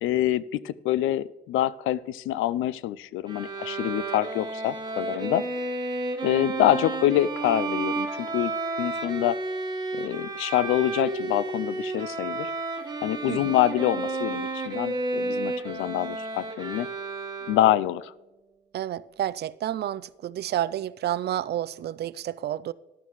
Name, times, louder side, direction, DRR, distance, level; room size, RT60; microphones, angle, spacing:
voice 1, 0.0-5.4 6.2-8.5 8.8-9.4 9.9-12.5 13.0-16.9 17.5-18.1, left 13 dB, 85° left, 0.4 m, -26 dB
Bowed string instrument, 3.3-17.9, right 3 dB, 20° right, 1.7 m, -32 dB
voice 2, 18.7-22.7, right 12 dB, 55° right, 0.4 m, -30 dB
14.0 x 11.0 x 3.1 m
cardioid pair, 90°, 20 cm